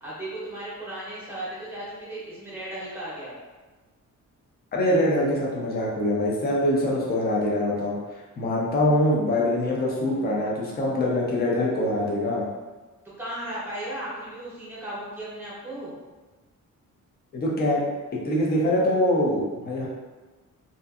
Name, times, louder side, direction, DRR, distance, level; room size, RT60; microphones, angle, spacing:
voice 1, 0.0-3.3 13.2-16.0, right 1 dB, 5° right, -8 dB, 0.7 m, -35 dB
voice 2, 4.7-8.0 8.4-12.4 17.3-17.8 18.2-19.9, left 1 dB, 30° left, -4 dB, 0.5 m, -24 dB
2.6 x 2.5 x 2.3 m, 1.2 s
wide cardioid pair, 175°, 31 cm